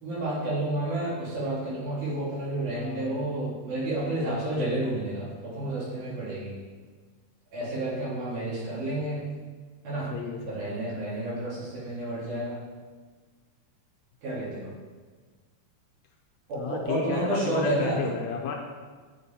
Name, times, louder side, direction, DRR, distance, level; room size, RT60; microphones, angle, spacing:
voice 1, 0.0-6.6 7.5-9.3 9.8-10.1 10.5-12.6 14.2-14.7 16.5-18.0, right 1 dB, 80° right, -8 dB, 3.7 m, -30 dB
voice 2, 2.7-3.2 10.1-10.7 16.6-18.5, left 6 dB, 80° left, 1 dB, 1.8 m, -33 dB
8.8 x 4.0 x 4.2 m, 1.5 s
omnidirectional pair, 3.5 m